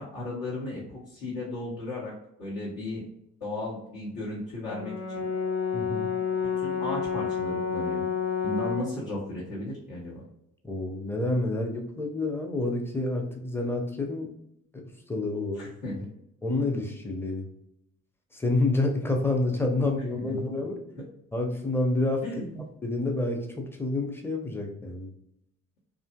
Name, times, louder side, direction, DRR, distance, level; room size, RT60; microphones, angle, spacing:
voice 1, 0.0-2.1 2.4-3.0 3.4-5.2 6.4-8.0 8.4-10.2 15.5-16.0 20.2-20.3 22.2-22.6, left 1 dB, 60° left, -10 dB, 1.2 m, -35 dB
Brass instrument, 4.7-9.0, left 6 dB, 40° left, 0.8 m, -29 dB
voice 2, 5.7-6.1 10.6-14.3 14.7-14.8 15.1-15.7 16.4-17.5 18.3-20.8 21.3-22.2 22.8-25.1, left 2 dB, 5° left, 2 dB, 0.6 m, -28 dB
2.8 x 2.5 x 2.2 m, 0.78 s
hypercardioid pair, 45°, 38 cm